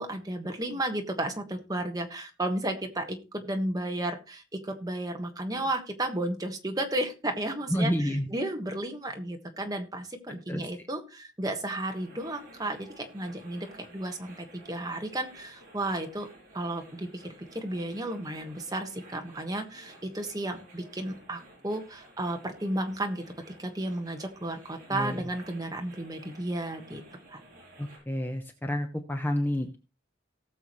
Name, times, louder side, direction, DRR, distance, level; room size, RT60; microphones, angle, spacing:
voice 1, 0.0-16.3 16.5-23.2 23.6-27.0 27.3-27.4, right 1 dB, 20° right, 4 dB, 1.4 m, -33 dB
voice 2, 7.7-8.3 10.5-10.9 24.9-25.3 27.8-29.8, equal, 10° left, 5 dB, 0.8 m, -30 dB
sound 1, 11.8-28.0, right 1 dB, 40° right, 7.5 m, -54 dB
18.0 x 7.0 x 3.1 m, 0.30 s
head